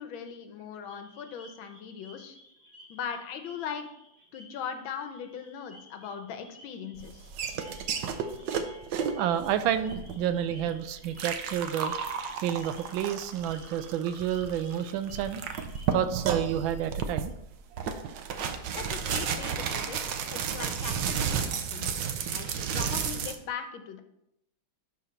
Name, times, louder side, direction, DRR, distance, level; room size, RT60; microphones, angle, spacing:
voice 1, 0.0-2.4 2.9-3.9 4.3-7.3 18.7-20.0 20.3-21.9 22.3-24.0, left 7 dB, 85° left, 7 dB, 1.6 m, -39 dB
sound 1, 0.9-16.3, left 1 dB, 20° right, 1.4 m, -55 dB
sound 2, 7.0-23.3, right 7 dB, 70° right, 1.3 m, -33 dB
voice 2, 9.1-11.9 12.4-15.4 15.9-17.3, right 10 dB, 85° right, 10 dB, 1.4 m, -29 dB
11.5 x 3.9 x 4.3 m, 0.80 s
omnidirectional pair, 2.1 m